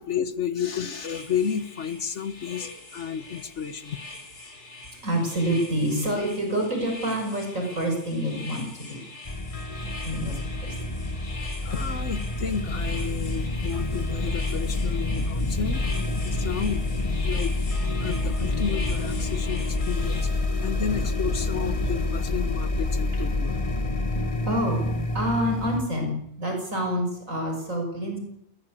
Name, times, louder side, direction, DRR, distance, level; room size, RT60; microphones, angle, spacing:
voice 1, 0.0-4.0 11.6-15.8 16.2-16.8 17.2-20.3 20.6-23.6, left 7 dB, 50° left, 14 dB, 1.4 m, -32 dB
sound 1, 0.6-20.2, left 2 dB, 80° left, 4.7 m, -42 dB
voice 2, 5.0-9.0 10.0-10.8 24.5-28.2, equal, 55° right, 2 dB, 6.1 m, -27 dB
sound 2, 9.2-25.8, left 2 dB, 25° left, 1.4 m, -28 dB
20.5 x 18.0 x 8.4 m, 0.72 s
omnidirectional pair, 1.6 m